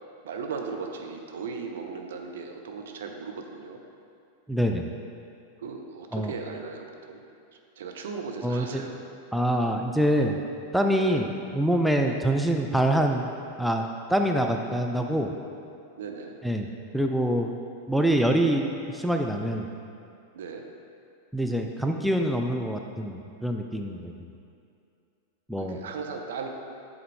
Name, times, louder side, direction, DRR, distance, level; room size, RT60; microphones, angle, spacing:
voice 1, 0.2-3.8 5.6-7.2 7.8-9.0 10.9-11.2 12.0-12.1 16.0-16.3 20.3-20.7 25.6-26.5, right 5 dB, 60° right, 3 dB, 0.5 m, -37 dB
voice 2, 4.5-4.9 6.1-6.3 8.4-8.8 9.3-10.4 10.7-13.3 13.6-15.3 16.4-16.7 16.9-17.5 17.9-18.7 18.9-19.7 21.3-24.1 25.5-25.8, right 1 dB, ahead, 2 dB, 0.3 m, -25 dB
7.8 x 3.6 x 3.7 m, 2.5 s
figure-of-eight pair, 90°, 0 cm